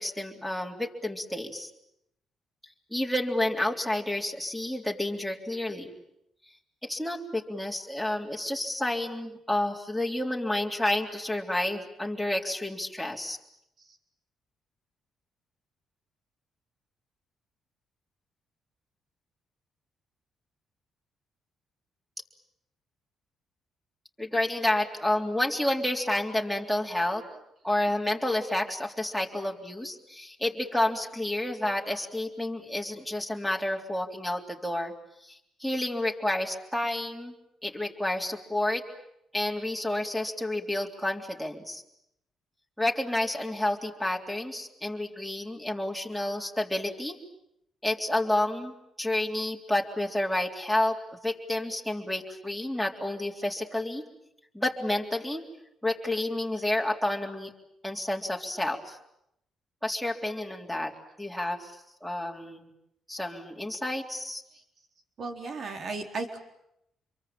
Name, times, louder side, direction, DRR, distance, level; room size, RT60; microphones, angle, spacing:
voice 1, 0.0-1.7 2.9-5.9 6.8-13.4 24.2-27.2 27.6-34.9 35.2-37.3 37.6-38.8 39.3-41.8 42.8-47.2 47.8-51.0 51.2-54.0 54.5-55.5 55.8-57.5 57.8-59.0 59.8-60.9 61.2-62.7 63.1-64.4, left 1 dB, ahead, 2 dB, 3.7 m, -30 dB
voice 2, 65.2-66.4, right 3 dB, 55° right, 5 dB, 4.2 m, -36 dB
26.5 x 23.5 x 8.9 m, 0.79 s
cardioid pair, 90°, 0 cm